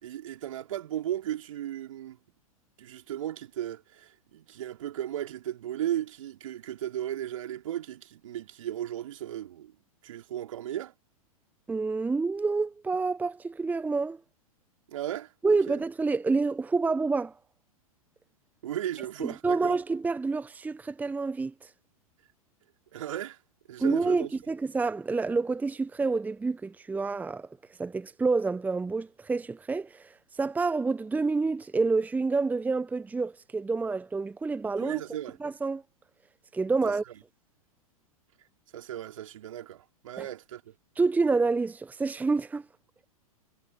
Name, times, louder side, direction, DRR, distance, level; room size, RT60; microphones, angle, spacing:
voice 1, 0.0-2.2 2.8-9.7 10.0-10.9 14.9-15.8 18.6-19.8 22.9-23.4 23.7-24.3 34.8-35.4 36.8-36.9 38.7-40.7, right 11 dB, 60° right, 3.7 m, -36 dB
voice 2, 11.7-14.2 15.4-17.3 19.2-21.7 23.8-27.5 27.8-35.0 35.4-35.8 36.5-37.0 40.2-40.3 41.0-42.6, right 4 dB, 10° right, 1.1 m, -28 dB
figure-of-eight pair, 100°, 19 cm